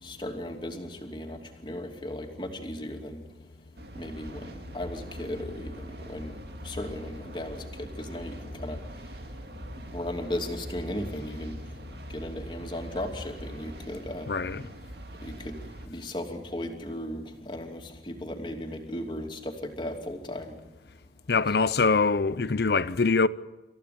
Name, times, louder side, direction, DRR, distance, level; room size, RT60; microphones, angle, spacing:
voice 1, 0.0-3.2 3.9-14.3 15.2-20.6, left 1 dB, 25° left, 2.8 m, -37 dB
sound 1, 3.8-15.9, equal, 65° right, 2.1 m, -42 dB
voice 2, 14.3-14.7 21.3-23.3, left 4 dB, 65° left, 0.6 m, -24 dB
27.5 x 15.0 x 8.6 m
head